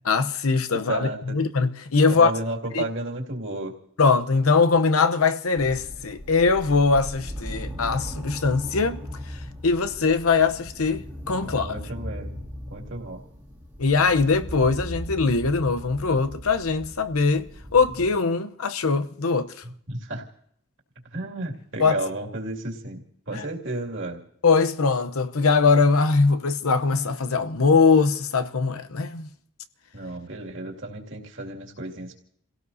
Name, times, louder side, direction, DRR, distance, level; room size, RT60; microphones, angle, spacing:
voice 1, 0.1-2.3 2.7-2.8 4.0-9.0 9.6-11.8 13.8-19.5 21.8-22.0 23.3-23.4 24.4-29.3, left 4 dB, 90° left, 0.8 m, -21 dB
voice 2, 0.9-1.4 2.1-3.7 11.4-12.4 12.7-13.2 19.9-20.2 21.1-24.2 29.9-32.1, right 2 dB, 60° right, 2.4 m, -32 dB
sound 1, 5.5-18.1, equal, 10° right, 1.9 m, -38 dB
30.0 x 17.0 x 2.7 m
head